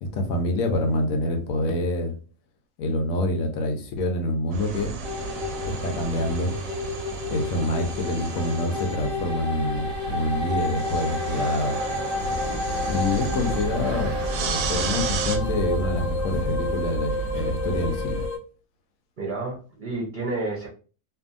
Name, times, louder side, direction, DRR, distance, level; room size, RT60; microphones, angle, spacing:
voice 1, 0.0-2.1 2.8-4.9 5.7-6.5 7.3-11.8 12.9-14.1 14.4-18.2, left 1 dB, 90° left, 4 dB, 1.1 m, -26 dB
sound 1, 4.5-15.4, right 5 dB, 85° right, 1.0 m, -33 dB
sound 2, 5.0-18.4, left 2 dB, 35° left, 0.8 m, -31 dB
sound 3, 12.2-18.3, equal, 60° left, 0.9 m, -32 dB
voice 2, 19.2-20.7, right 2 dB, 45° right, -3 dB, 0.7 m, -30 dB
2.6 x 2.6 x 2.5 m, 0.36 s
omnidirectional pair, 1.4 m